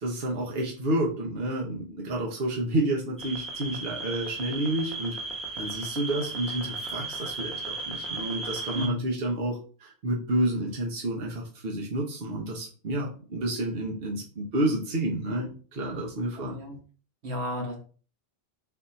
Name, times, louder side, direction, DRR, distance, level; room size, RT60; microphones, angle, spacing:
voice 1, 0.0-5.2 5.5-16.6, right 1 dB, 65° right, -2 dB, 1.2 m, -30 dB
sound 1, 3.2-8.9, right 3 dB, ahead, 0.9 m, -35 dB
voice 2, 8.7-9.1 16.4-16.8 17.2-17.8, left 1 dB, 85° right, 2 dB, 1.4 m, -33 dB
4.1 x 2.6 x 4.1 m, 0.39 s
omnidirectional pair, 1.1 m